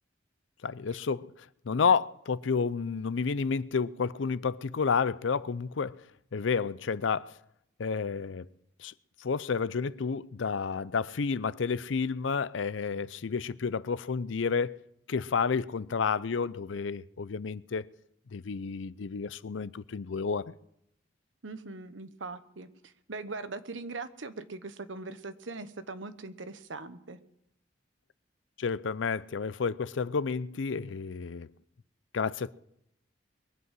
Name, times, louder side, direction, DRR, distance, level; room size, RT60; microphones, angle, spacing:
voice 1, 0.6-1.3 1.6-6.0 6.3-7.3 7.8-8.5 8.8-8.9 9.2-14.8 15.1-17.9 18.3-20.5 28.6-31.5 32.1-32.5, left 5 dB, 85° left, 0.5 m, -30 dB
voice 2, 21.4-27.2, right 3 dB, 85° right, 1.1 m, -41 dB
22.0 x 8.2 x 7.5 m
head